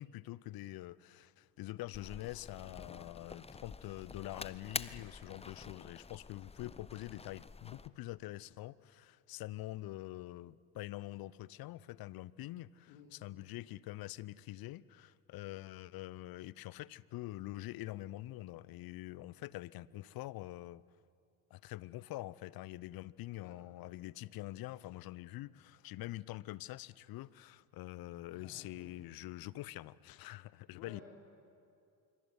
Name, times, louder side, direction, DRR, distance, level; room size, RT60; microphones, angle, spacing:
voice 1, 0.0-20.8 21.5-31.0, left 17 dB, 45° left, 0.8 m, -45 dB
sound 1, 1.9-7.9, left 4 dB, 15° left, 0.8 m, -47 dB
voice 2, 28.3-28.9 30.7-31.0, left 7 dB, 70° left, 3.7 m, -55 dB
25.5 x 24.0 x 9.6 m
figure-of-eight pair, 55°, 48 cm